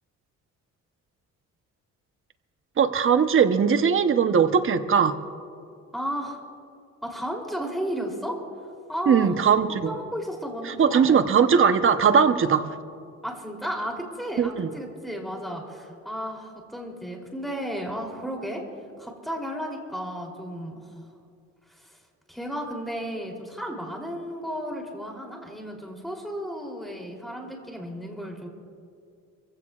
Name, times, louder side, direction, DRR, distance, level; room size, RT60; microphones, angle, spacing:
voice 1, 2.8-5.2 9.1-9.9 10.8-12.7 14.4-14.7, right 6 dB, 45° right, 9 dB, 0.9 m, -20 dB
voice 2, 5.9-6.4 7.0-8.4 8.9-9.3 9.8-11.3 13.2-18.6 19.0-20.9 21.7-22.0 22.3-28.5, equal, ahead, 0 dB, 3.2 m, -33 dB
25.0 x 15.5 x 2.4 m, 2.4 s
cardioid pair, 90°, 30 cm